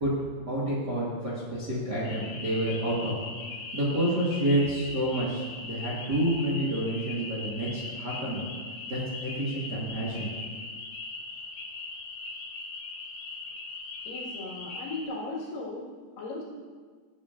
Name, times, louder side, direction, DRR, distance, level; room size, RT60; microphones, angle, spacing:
voice 1, 0.5-3.1 3.7-8.4 8.9-10.3, right 1 dB, 40° right, -7 dB, 1.5 m, -29 dB
sound 1, 2.0-15.1, left 3 dB, 85° left, 3.1 m, -40 dB
voice 2, 14.1-16.4, left 2 dB, 60° left, -4 dB, 3.3 m, -37 dB
17.0 x 9.0 x 2.6 m, 1.6 s
omnidirectional pair, 4.7 m